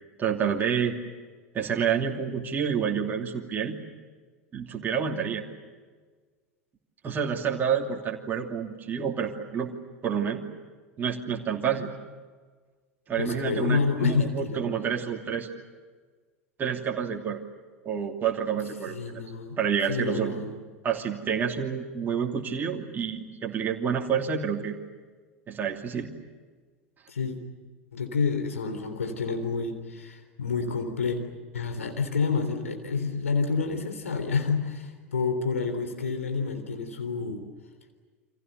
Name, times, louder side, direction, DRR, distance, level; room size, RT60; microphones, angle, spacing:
voice 1, 0.2-1.0 1.5-3.8 4.5-5.4 7.0-9.7 10.0-10.4 11.0-11.9 13.1-15.5 16.6-17.4 17.8-19.2 19.6-20.4 20.8-24.8 25.5-26.1, right 7 dB, 25° right, 1 dB, 2.8 m, -28 dB
voice 2, 13.2-14.6 18.9-19.6 19.9-20.5 27.1-27.4 27.9-31.2 31.5-37.4, left 5 dB, 70° left, 6 dB, 3.6 m, -28 dB
30.0 x 26.0 x 6.8 m, 1.4 s
figure-of-eight pair, 85°, 8 cm